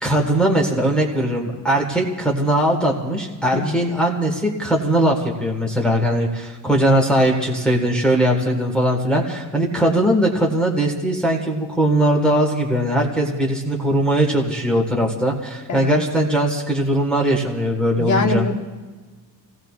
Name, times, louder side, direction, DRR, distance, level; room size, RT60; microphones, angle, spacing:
voice 1, 0.0-18.4, right 1 dB, ahead, -1 dB, 1.6 m, -20 dB
voice 2, 18.0-18.5, left 3 dB, 45° left, 2 dB, 1.5 m, -22 dB
29.5 x 18.0 x 2.4 m, 1.3 s
cardioid pair, 170°, 39 cm